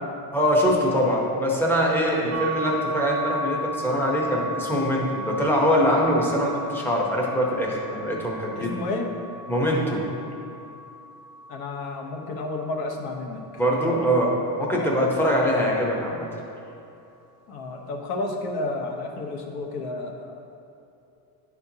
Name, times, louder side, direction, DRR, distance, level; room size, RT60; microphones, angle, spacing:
voice 1, 0.3-8.8 9.5-10.0 13.6-14.3 14.6-16.3, equal, 5° left, -3 dB, 0.8 m, -23 dB
sound 1, 2.3-14.0, equal, 40° right, 0.6 m, -36 dB
voice 2, 8.5-9.1 11.5-13.4 13.9-14.1 14.7-15.1 17.5-20.4, left 2 dB, 60° left, 2 dB, 1.0 m, -31 dB
10.5 x 4.4 x 2.8 m, 2.8 s
cardioid pair, 150°, 43 cm